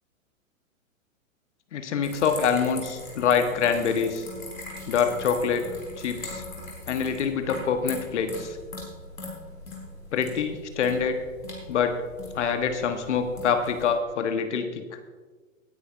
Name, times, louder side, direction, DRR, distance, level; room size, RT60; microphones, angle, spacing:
voice 1, 1.7-4.2 4.9-5.6 6.0-6.4 6.9-8.6 10.1-11.1 11.7-11.9 12.3-14.8, left 6 dB, 60° left, 7 dB, 1.4 m, -25 dB
sound 1, 2.0-13.9, left 2 dB, 80° left, 4.1 m, -41 dB
19.0 x 9.8 x 2.6 m, 1.4 s
figure-of-eight pair, 110°, 40 cm